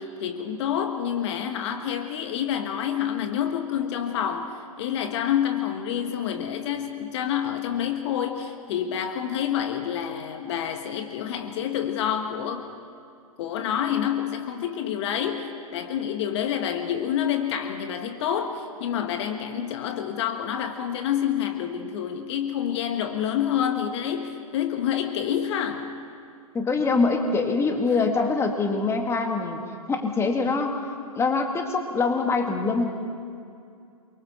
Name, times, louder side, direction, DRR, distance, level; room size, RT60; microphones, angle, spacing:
voice 1, 0.0-12.7 13.4-25.9 28.0-28.1, left 9 dB, 50° left, 6 dB, 1.5 m, -28 dB
voice 2, 26.5-29.6 29.9-30.8 31.2-33.2, left 3 dB, 15° left, 4 dB, 2.0 m, -24 dB
28.5 x 23.5 x 4.3 m, 2.4 s
hypercardioid pair, 115°, 18 cm